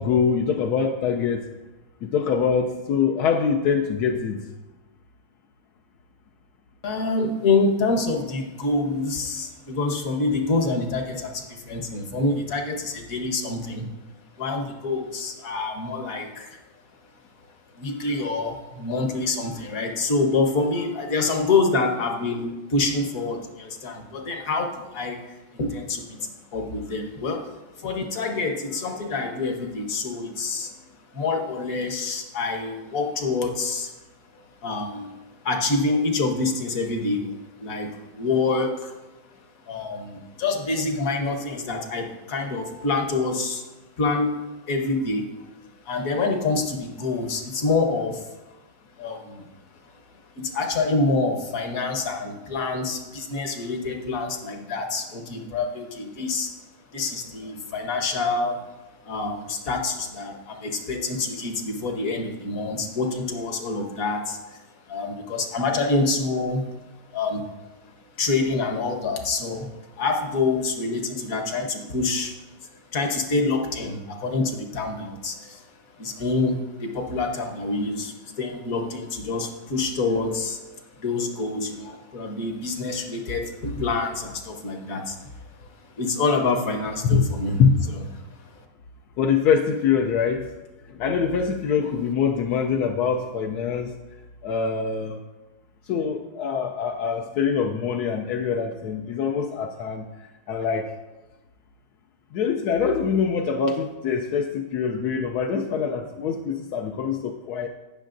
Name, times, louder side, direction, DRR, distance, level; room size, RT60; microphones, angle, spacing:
voice 1, 0.0-1.5 2.0-4.4 87.0-87.2 87.6-87.8 89.2-90.5 91.0-93.9 94.4-95.2 95.9-100.9 102.3-107.7, left 6 dB, 70° left, 3 dB, 0.9 m, -24 dB
voice 2, 6.8-13.9 14.4-16.6 17.8-27.5 27.8-30.7 31.1-33.9 34.6-35.1 35.4-37.3 37.6-37.9 38.1-38.9 39.7-43.6 44.0-44.4 44.7-45.2 45.8-48.3 49.0-49.5 50.4-56.5 56.9-58.7 59.0-64.6 64.9-66.7 67.1-67.4 68.2-72.3 72.9-75.6 76.0-80.6 81.0-85.2 85.6-85.7 86.0-87.6 88.4-88.5, left 3 dB, 50° left, 3 dB, 1.3 m, -26 dB
17.5 x 6.2 x 2.6 m, 1.1 s
omnidirectional pair, 2.2 m